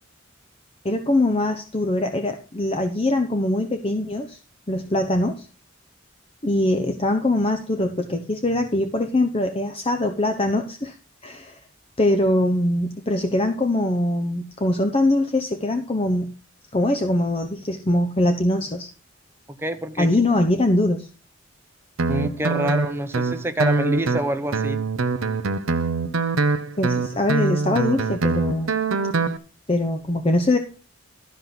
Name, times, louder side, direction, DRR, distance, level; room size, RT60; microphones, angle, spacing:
voice 1, 0.8-4.4 4.7-5.5 6.4-11.0 11.2-11.6 12.0-16.3 16.7-18.9 20.0-21.1 26.8-28.7 29.7-30.6, left 1 dB, 30° left, 6 dB, 0.9 m, -22 dB
voice 2, 19.5-20.1 22.1-24.8, right 1 dB, 10° right, 7 dB, 0.9 m, -26 dB
Guitar, 22.0-29.4, right 4 dB, 85° right, 0.8 m, -24 dB
12.5 x 5.3 x 6.0 m, 0.36 s
head